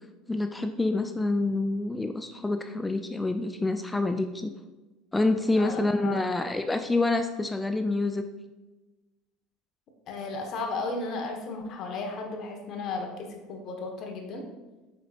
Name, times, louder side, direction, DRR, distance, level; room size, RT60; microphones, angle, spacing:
voice 1, 0.3-4.5 5.1-8.3, left 2 dB, 10° left, 7 dB, 0.4 m, -27 dB
voice 2, 5.5-6.2 10.1-14.4, left 3 dB, 55° left, 3 dB, 1.2 m, -34 dB
7.9 x 5.1 x 2.4 m, 1.2 s
hypercardioid pair, 85°, 0 cm